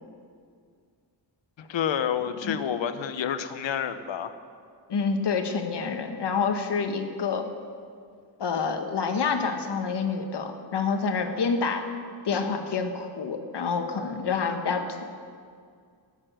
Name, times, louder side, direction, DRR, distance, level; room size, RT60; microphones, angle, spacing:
voice 1, 1.6-4.3, left 8 dB, 80° left, 10 dB, 1.0 m, -29 dB
voice 2, 4.9-7.4 8.4-11.8 12.2-15.0, left 5 dB, 65° left, 5 dB, 1.6 m, -27 dB
19.0 x 7.5 x 7.8 m, 2.2 s
wide cardioid pair, 120°, 45 cm